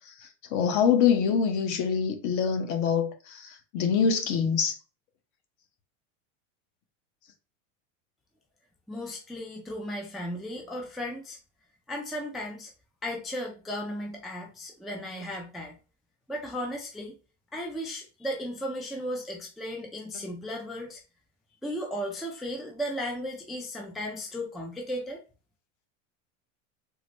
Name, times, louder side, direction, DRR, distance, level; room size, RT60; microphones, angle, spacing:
voice 1, 0.1-4.7, left 7 dB, 50° left, 0.9 m, -25 dB
voice 2, 8.9-11.4 11.9-12.7 13.0-15.8 16.3-17.1 17.5-21.0 21.6-25.2, equal, ahead, 0.3 m, -35 dB
3.8 x 2.0 x 3.1 m
supercardioid pair, 130°, 38 cm